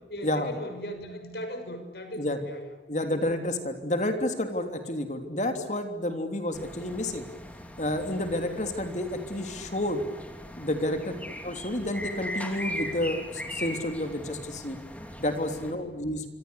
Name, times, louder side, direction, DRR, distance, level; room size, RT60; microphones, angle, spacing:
voice 1, 0.0-2.7 3.0-3.4 8.2-8.6 11.0-11.2 15.6-16.1, equal, 70° left, 8 dB, 6.3 m, -39 dB
voice 2, 2.9-7.3 7.8-10.0 10.6-11.1 11.4-14.8 15.2-16.2, left 1 dB, 40° left, 6 dB, 3.3 m, -30 dB
sound 1, 6.5-15.7, equal, 10° left, 3.2 m, -40 dB
26.5 x 26.0 x 8.3 m, 1.2 s
head